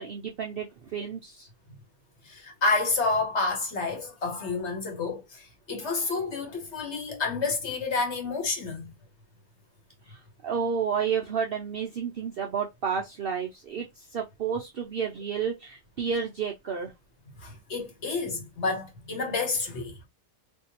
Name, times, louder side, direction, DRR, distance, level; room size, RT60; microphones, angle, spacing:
voice 1, 0.0-1.5 10.1-16.9, right 6 dB, 60° right, 0.6 m, -31 dB
voice 2, 2.2-8.9 17.4-20.0, left 3 dB, 55° left, 1.4 m, -29 dB
3.4 x 2.7 x 2.9 m
omnidirectional pair, 1.5 m